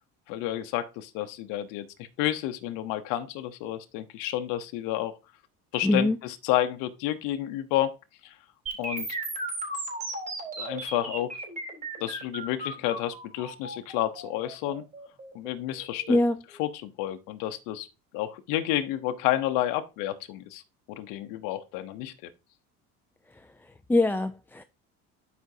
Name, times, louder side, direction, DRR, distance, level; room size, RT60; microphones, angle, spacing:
voice 1, 0.3-1.9 2.2-5.1 5.7-7.9 8.8-9.1 10.6-11.4 12.0-14.8 15.3-16.2 16.6-17.9 18.1-20.6 20.9-22.3, left 13 dB, 80° left, 0.9 m, -30 dB
voice 2, 5.8-6.2 16.1-16.4 23.3-24.6, left 2 dB, 5° left, 0.4 m, -24 dB
sound 1, 8.7-16.6, right 2 dB, 25° right, 3.8 m, -36 dB
12.5 x 5.1 x 2.7 m
cardioid pair, 115°, 30 cm